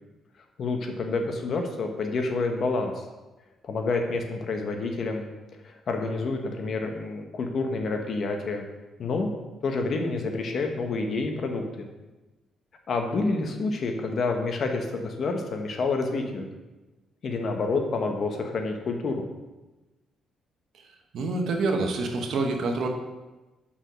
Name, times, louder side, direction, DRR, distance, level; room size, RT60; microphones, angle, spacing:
voice 1, 0.6-3.1 3.6-5.3 5.6-8.7 9.0-9.3 9.6-11.9 12.9-16.5 17.2-19.2, left 3 dB, 55° left, 4 dB, 1.1 m, -28 dB
voice 2, 21.1-22.9, right 3 dB, 70° right, 3 dB, 1.1 m, -26 dB
5.7 x 5.0 x 6.1 m, 1.1 s
cardioid pair, 90°, 0 cm